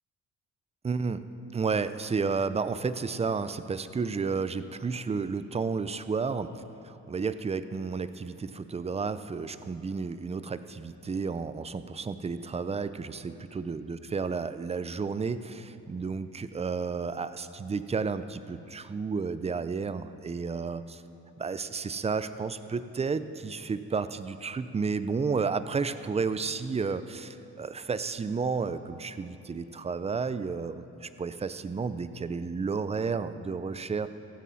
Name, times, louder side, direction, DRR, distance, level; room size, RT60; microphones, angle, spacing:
voice 1, 0.8-1.3 1.5-21.0 21.4-34.1, right 5 dB, 20° right, 13 dB, 0.5 m, -32 dB
16.5 x 15.0 x 4.2 m, 2.9 s
cardioid pair, 90°, 30 cm